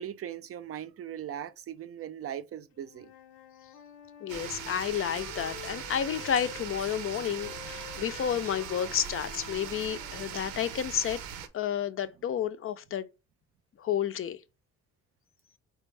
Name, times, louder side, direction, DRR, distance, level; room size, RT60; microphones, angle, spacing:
voice 1, 0.0-3.1, right 10 dB, 50° right, 0.5 m, -39 dB
Wind instrument woodwind instrument, 2.7-6.7 7.4-10.9, left 10 dB, 90° left, 0.6 m, -48 dB
voice 2, 4.2-11.2 11.5-13.1 13.8-14.4, left 9 dB, 45° left, 0.4 m, -31 dB
sound 1, 4.3-11.5, right 8 dB, 90° right, 0.7 m, -40 dB
4.3 x 3.4 x 3.2 m
cardioid pair, 90°, 30 cm